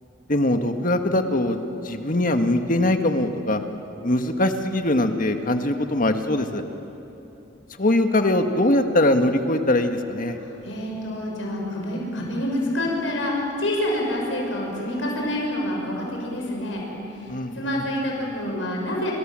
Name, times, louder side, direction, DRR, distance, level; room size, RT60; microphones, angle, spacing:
voice 1, 0.3-1.6 1.8-3.6 4.0-6.6 7.8-10.4 17.3-17.8, left 1 dB, 45° left, 6 dB, 1.7 m, -22 dB
voice 2, 10.3-13.3 13.6-16.8 17.2-17.3 17.5-19.1, left 1 dB, 90° left, -1 dB, 6.5 m, -27 dB
29.5 x 26.0 x 7.7 m, 2.9 s
head